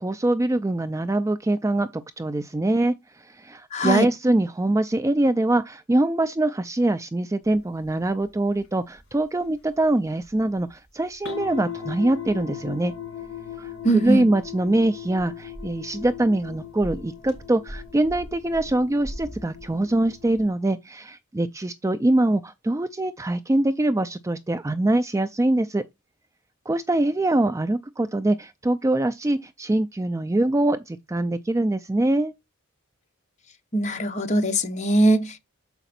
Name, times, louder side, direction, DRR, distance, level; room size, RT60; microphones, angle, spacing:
voice 1, 0.0-12.9 13.6-25.8 26.7-32.3, right 1 dB, 15° right, 0.3 m, -23 dB
voice 2, 3.7-4.1 13.8-14.2 33.7-35.4, right 1 dB, 30° left, 1.1 m, -21 dB
sound 1, 8.6-8.7 9.0-9.1 10.2-10.3 10.6-10.7 11.2-20.5, left 6 dB, 55° left, 3.2 m, -38 dB
6.9 x 4.9 x 4.2 m
head